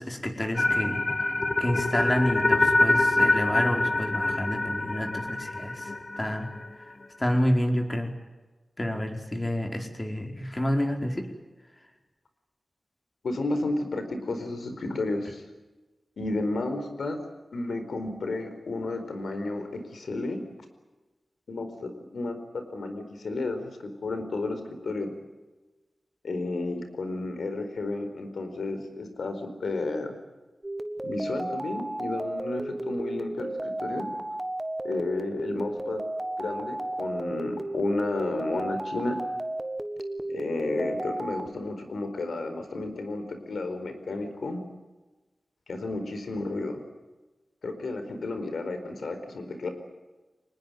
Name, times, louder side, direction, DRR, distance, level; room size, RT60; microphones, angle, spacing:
voice 1, 0.0-6.9 7.2-8.1 8.8-11.3, equal, 20° left, 4 dB, 4.6 m, -29 dB
sound 1, 0.6-6.7, left 2 dB, 35° left, 1.7 m, -25 dB
voice 2, 13.2-15.4 16.2-17.2 17.5-20.4 21.5-25.1 26.2-30.2 31.0-34.1 34.8-36.0 36.4-39.2 40.3-44.6 45.7-46.8 47.6-49.7, left 2 dB, 90° left, 8 dB, 4.4 m, -32 dB
sound 2, 30.6-41.5, right 1 dB, 20° right, 1.5 m, -33 dB
25.0 x 20.0 x 9.2 m, 1.2 s
wide cardioid pair, 80°, 0 cm